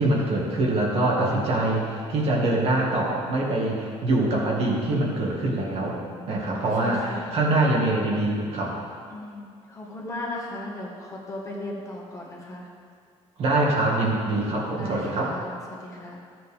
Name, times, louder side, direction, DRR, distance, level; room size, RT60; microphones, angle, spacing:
voice 1, 0.0-6.0 6.3-8.8 13.4-15.4, right 2 dB, 60° right, -3 dB, 1.9 m, -24 dB
voice 2, 5.8-6.3 6.5-7.3 9.1-12.7 14.8-16.2, left 2 dB, 25° left, -3 dB, 1.6 m, -37 dB
13.0 x 7.8 x 3.6 m, 2.1 s
cardioid pair, 145°, 12 cm